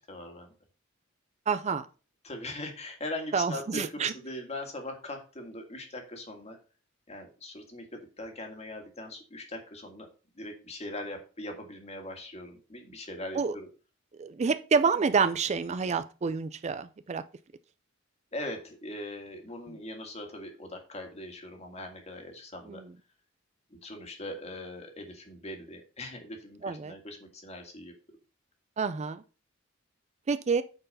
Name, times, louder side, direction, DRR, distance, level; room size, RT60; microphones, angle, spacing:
voice 1, 0.1-0.5 2.2-6.6 7.1-10.1 10.4-13.7 18.3-22.8 23.7-27.9, left 1 dB, 35° left, 4 dB, 1.9 m, -41 dB
voice 2, 1.5-1.9 3.3-4.1 13.3-13.6 14.2-17.2 22.7-22.9 26.6-26.9 28.8-29.2 30.3-30.6, right 5 dB, 35° right, 12 dB, 0.4 m, -28 dB
8.7 x 4.5 x 5.5 m, 0.35 s
head